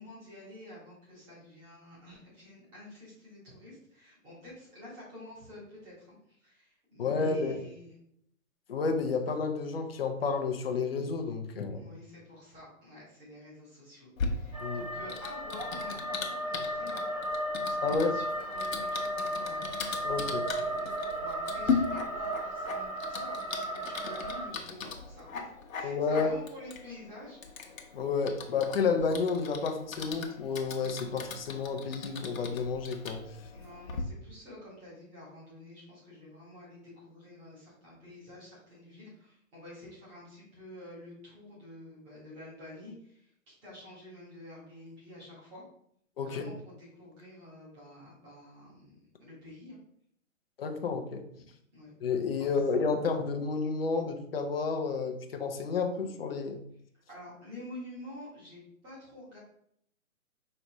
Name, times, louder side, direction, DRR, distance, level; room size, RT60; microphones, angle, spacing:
voice 1, 0.0-7.9 11.7-17.1 17.5-20.9 21.1-25.5 25.7-27.4 33.5-45.6 46.2-49.8 51.7-51.9 57.1-59.4, left 1 dB, 10° right, -8 dB, 1.4 m, -49 dB
voice 2, 7.0-7.6 8.7-11.8 14.6-14.8 17.8-18.1 20.0-20.5 25.8-26.3 27.9-33.2 46.2-46.4 50.6-51.2 52.0-56.6, left 4 dB, 45° left, 5 dB, 0.7 m, -30 dB
Typing, 14.2-34.0, left 5 dB, 70° left, 1.1 m, -39 dB
sound 1, 14.5-24.5, equal, 25° right, 0.6 m, -35 dB
5.3 x 3.4 x 3.0 m, 0.70 s
hypercardioid pair, 170°, 41 cm